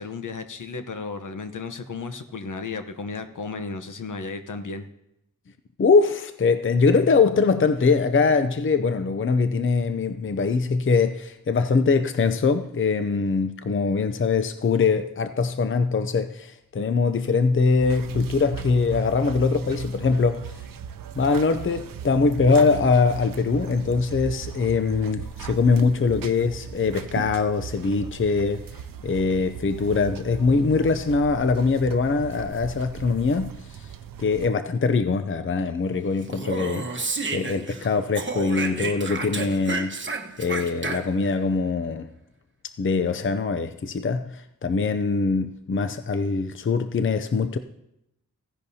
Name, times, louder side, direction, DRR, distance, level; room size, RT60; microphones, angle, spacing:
voice 1, 0.0-4.9, left 4 dB, 65° left, 0.9 m, -34 dB
voice 2, 5.8-20.6 21.2-28.7 29.0-33.9 34.2-36.9 37.3-40.1 40.4-42.1 42.8-47.6, left 4 dB, 40° left, 0.5 m, -22 dB
sound 1, 17.8-34.5, right 8 dB, 80° right, 0.6 m, -38 dB
Speech, 36.2-37.9 38.2-41.3, right 4 dB, 35° right, 1.1 m, -31 dB
15.5 x 10.5 x 2.8 m
wide cardioid pair, 95°, 33 cm